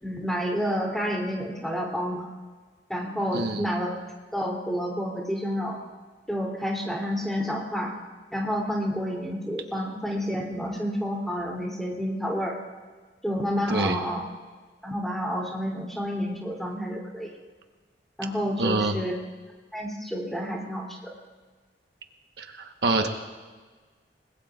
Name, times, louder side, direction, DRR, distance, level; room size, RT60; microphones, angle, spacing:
voice 1, 0.0-2.3 2.9-4.0 4.3-5.8 6.3-7.9 8.3-12.6 13.2-14.2 14.8-17.3 18.2-19.1 19.7-21.0, equal, ahead, -2 dB, 2.9 m, -29 dB
voice 2, 3.3-3.7 13.7-14.0 18.6-18.9 22.4-23.1, right 2 dB, 70° right, 4 dB, 1.2 m, -26 dB
28.5 x 20.5 x 2.5 m, 1.4 s
head